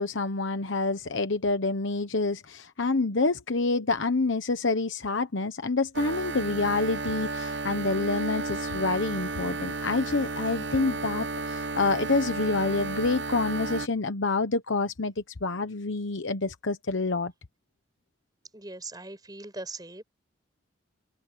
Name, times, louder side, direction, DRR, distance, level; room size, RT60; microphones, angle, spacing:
voice 1, 0.0-17.3, left 3 dB, 80° left, 1.1 m, -27 dB
sound 1, 5.9-13.9, right 3 dB, 65° right, 0.8 m, -33 dB
voice 2, 18.5-20.0, right 2 dB, 20° right, 4.9 m, -40 dB
open air
head